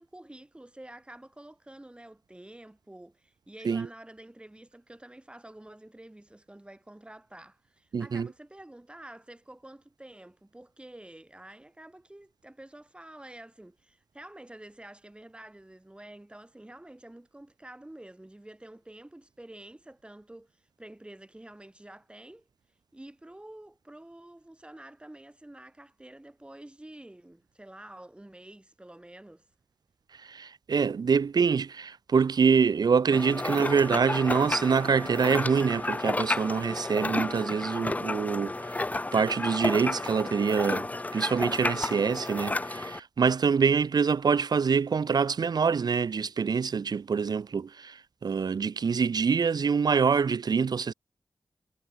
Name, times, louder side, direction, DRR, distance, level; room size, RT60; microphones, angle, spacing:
voice 1, 0.0-22.5 22.9-29.5, right 1 dB, 15° right, 3.2 m, -49 dB
voice 2, 7.9-8.3 30.2-50.9, right 6 dB, 65° right, 0.6 m, -25 dB
sound 1, 33.1-43.0, left 2 dB, 20° left, 0.5 m, -32 dB
wide cardioid pair, 105°, 7 cm